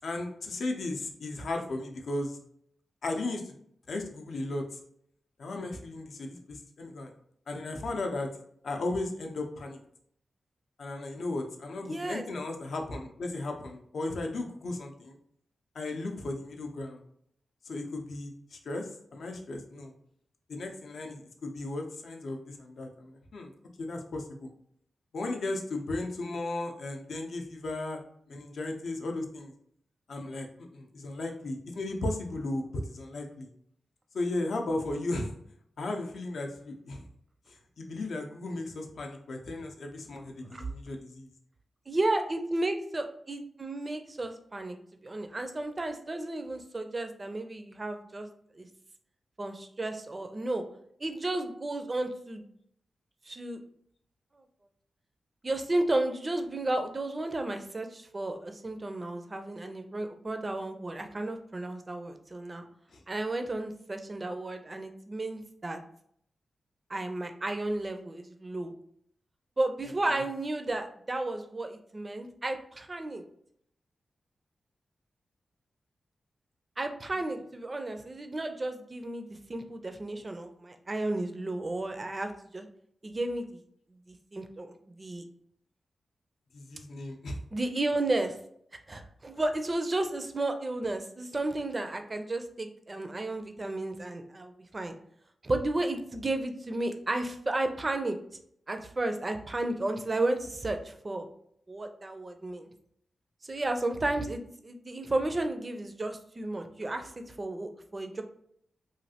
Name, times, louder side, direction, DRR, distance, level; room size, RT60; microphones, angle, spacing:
voice 1, 0.0-2.4 3.0-3.5 3.9-4.8 5.4-7.1 7.5-8.3 8.6-9.8 10.8-15.2 15.7-17.0 17.6-19.9 20.5-23.5 23.8-24.5 25.1-28.0 28.3-29.5 30.1-30.5 30.7-33.5 34.1-35.3 35.8-37.1 37.5-41.3 62.9-63.0 69.8-70.2 77.1-77.3 86.5-87.4 89.3-89.4, left 2 dB, 70° left, 3 dB, 0.5 m, -35 dB
voice 2, 11.8-12.2 40.4-40.6 41.9-44.8 45.0-48.3 48.6-48.7 49.4-50.6 51.0-52.4 53.3-53.6 55.4-62.7 63.1-65.8 66.9-68.7 69.6-73.2 76.8-82.7 83.0-83.6 84.1-85.2 87.5-88.3 88.9-94.9 95.4-98.2 98.7-101.3 101.7-102.7 103.4-108.2, right 2 dB, 25° right, 6 dB, 0.4 m, -33 dB
3.1 x 2.4 x 2.8 m, 0.68 s
wide cardioid pair, 135°, 0 cm